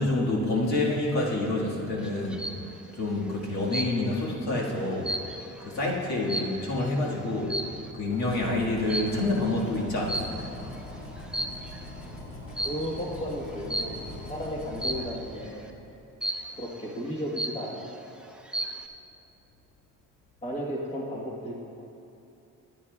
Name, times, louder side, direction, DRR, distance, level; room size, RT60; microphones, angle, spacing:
voice 1, 0.0-2.4 2.9-5.1 5.6-7.6 7.9-10.5, left 2 dB, 65° left, -4 dB, 1.8 m, -27 dB
sound 1, 2.0-2.7 3.7-4.2 4.6-6.9 7.4-7.9 8.9-9.3 10.1-10.7 11.2-11.9 12.6-12.9 13.7-14.1 14.8-15.2 16.2-16.7 17.1-17.2 17.4-18.0 18.3-18.9, right 1 dB, 5° right, 0.6 m, -33 dB
sound 2, 7.9-15.8, left 1 dB, 45° left, 2.0 m, -42 dB
voice 2, 12.6-15.6 16.6-17.9 20.4-21.5, equal, 20° left, -3 dB, 1.3 m, -34 dB
14.0 x 9.6 x 2.3 m, 2.9 s
cardioid pair, 90°, 30 cm